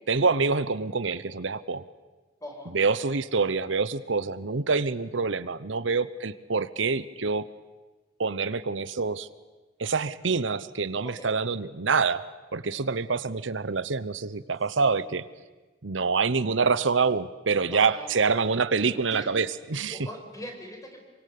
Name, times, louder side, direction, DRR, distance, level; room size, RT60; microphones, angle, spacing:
voice 1, 0.1-1.8 2.7-7.5 8.2-9.3 9.8-12.2 12.5-15.2 15.8-20.0, right 4 dB, 80° right, 15 dB, 0.9 m, -26 dB
voice 2, 2.4-2.7 11.0-11.3 14.6-15.0 17.7-18.1 19.1-19.3 19.9-21.0, equal, 20° left, 3 dB, 5.3 m, -41 dB
26.5 x 24.5 x 8.6 m, 1.2 s
head